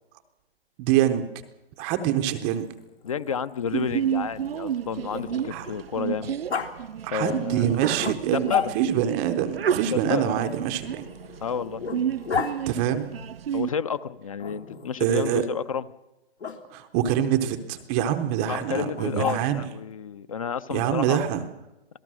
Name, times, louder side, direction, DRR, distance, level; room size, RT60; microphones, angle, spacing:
voice 1, 0.8-1.2 1.8-2.7 5.5-5.6 7.0-8.5 8.7-11.0 12.7-13.1 15.0-15.4 16.7-19.6 20.7-21.4, right 10 dB, 10° right, 8 dB, 0.7 m, -25 dB
Growling, 2.4-5.8 6.5-6.7 8.0-9.1 10.4-12.5 14.4-15.1 16.4-16.6 18.9-19.8, left 6 dB, 75° left, 3.8 m, -33 dB
voice 2, 3.0-6.4 7.1-7.7 8.3-8.8 9.9-10.4 11.4-11.8 13.5-15.8 18.5-21.2, left 7 dB, 30° left, 16 dB, 0.7 m, -30 dB
Sneeze, 3.7-13.7, right 9 dB, 65° right, 0.6 m, -31 dB
26.5 x 18.5 x 6.2 m, 0.97 s
hypercardioid pair, 155°, 32 cm